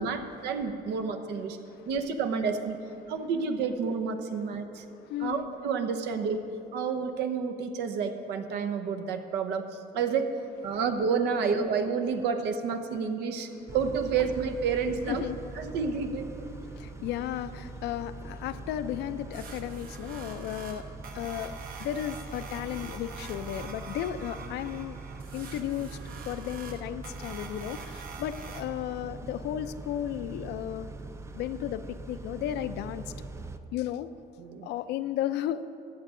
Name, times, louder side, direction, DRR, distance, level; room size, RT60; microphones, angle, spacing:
voice 1, 0.0-1.6 1.9-2.8 3.1-4.8 5.2-6.4 6.7-9.6 9.9-10.3 10.6-15.2 15.6-16.5 34.4-34.7, right 5 dB, 80° right, 7 dB, 0.9 m, -30 dB
voice 2, 4.8-5.5 10.7-10.8 12.9-13.0 13.5-13.8 15.1-15.8 16.5-25.0 25.3-26.0 26.2-30.9 31.3-33.1 33.7-34.1 34.6-35.6, left 11 dB, 80° left, 12 dB, 0.5 m, -34 dB
Car / Idling / Accelerating revving vroom, 13.7-33.6, right 3 dB, 15° right, 0.5 m, -42 dB
sound 1, 19.3-28.6, right 5 dB, 60° right, 1.1 m, -45 dB
14.0 x 8.9 x 3.7 m, 2.7 s
cardioid pair, 110°, 17 cm